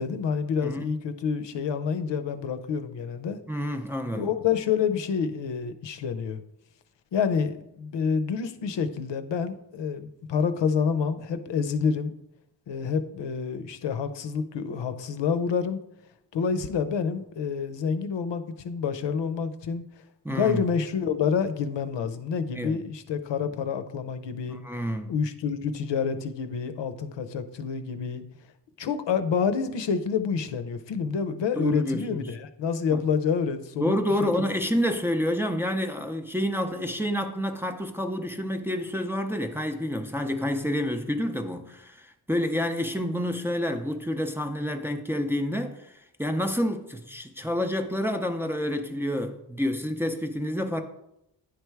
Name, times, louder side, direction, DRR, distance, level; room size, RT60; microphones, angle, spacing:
voice 1, 0.0-3.4 4.1-6.4 7.1-12.1 12.7-15.8 16.3-19.8 20.3-24.6 25.1-28.2 28.8-34.5, left 6 dB, 90° left, 0.7 m, -28 dB
voice 2, 3.5-4.3 20.2-20.6 22.5-22.8 24.5-25.1 31.6-32.2 32.9-33.0 33.8-50.8, equal, 5° right, 0.5 m, -28 dB
9.9 x 3.4 x 4.5 m
wide cardioid pair, 135°, 42 cm